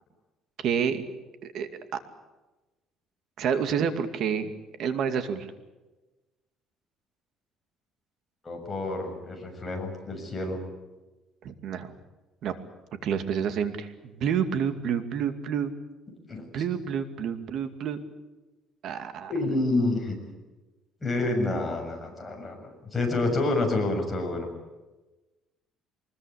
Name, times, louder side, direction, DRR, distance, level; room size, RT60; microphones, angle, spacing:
voice 1, 0.6-1.0 1.4-1.7 3.4-4.5 4.8-5.5 11.4-11.9 12.4-12.5 13.0-15.7 16.5-18.0 18.8-19.3, right 7 dB, 60° right, 9 dB, 2.4 m, -28 dB
voice 2, 8.4-10.6 16.3-16.4 19.3-20.2 21.0-24.5, left 2 dB, 15° left, 1 dB, 7.1 m, -28 dB
24.0 x 21.0 x 8.6 m, 1.1 s
cardioid pair, 145°, 0 cm